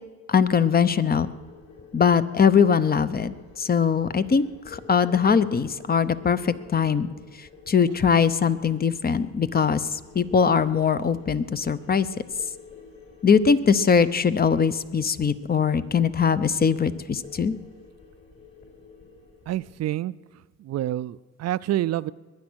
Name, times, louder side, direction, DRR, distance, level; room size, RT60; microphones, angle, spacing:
voice 1, 0.3-1.3 1.9-7.1 7.7-12.1 13.2-17.5, left 6 dB, 30° left, 13 dB, 0.8 m, -21 dB
sound 1, 0.7-19.8, left 4 dB, 50° left, 4.8 m, -50 dB
voice 2, 19.5-20.1 20.6-22.1, right 13 dB, 60° right, 18 dB, 0.5 m, -27 dB
21.5 x 9.6 x 6.3 m, 1.3 s
cardioid pair, 90°, 30 cm